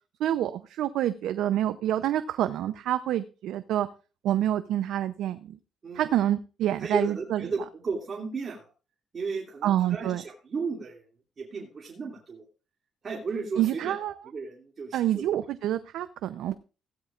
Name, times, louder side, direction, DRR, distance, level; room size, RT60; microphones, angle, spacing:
voice 1, 0.2-3.9 4.2-5.6 5.9-7.4 9.6-10.2 13.6-14.1 14.9-16.5, right 12 dB, 85° right, 11 dB, 0.6 m, -27 dB
voice 2, 5.8-6.2 6.8-8.7 9.1-11.0 11.4-12.4 13.0-13.9 14.2-15.2, right 4 dB, 45° right, -1 dB, 2.6 m, -34 dB
16.5 x 12.5 x 2.5 m, 0.34 s
cardioid pair, 90°, 0 cm